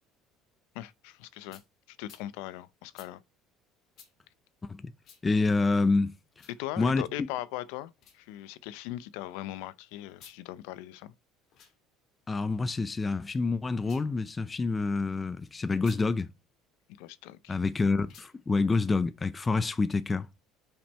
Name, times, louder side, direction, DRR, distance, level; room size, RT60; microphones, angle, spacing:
voice 1, 0.7-1.6 1.9-3.2 6.5-11.1 17.0-17.6, left 15 dB, 80° left, 0.6 m, -39 dB
sound 1, 1.5-1.7 2.0-2.3 2.9-3.1 3.9-4.1 5.0-5.2 6.3-6.6 7.9-8.2 10.1-10.4 11.4-11.7 13.7-14.1 15.7-16.0 18.0-18.3, left 7 dB, 45° left, 1.8 m, -55 dB
voice 2, 5.2-6.1 6.8-7.0 12.3-16.3 17.5-20.3, left 3 dB, 15° left, 0.4 m, -27 dB
5.8 x 5.4 x 4.1 m
cardioid pair, 160°, 0 cm